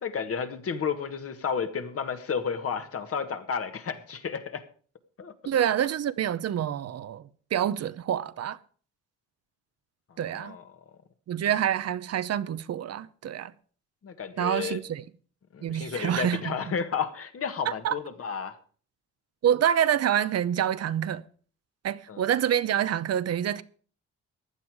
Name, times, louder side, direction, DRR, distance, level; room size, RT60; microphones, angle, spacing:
voice 1, 0.0-4.6 5.2-5.3 10.3-10.6 14.0-14.8 15.5-18.5 22.1-22.2, left 6 dB, 50° left, 1.7 m, -32 dB
voice 2, 5.5-8.6 10.2-10.6 11.3-13.5 14.4-15.0 15.6-16.6 17.8-18.0 19.4-21.2 21.8-23.6, right 10 dB, 55° right, 0.8 m, -27 dB
15.5 x 10.5 x 4.9 m
cardioid pair, 90°, 30 cm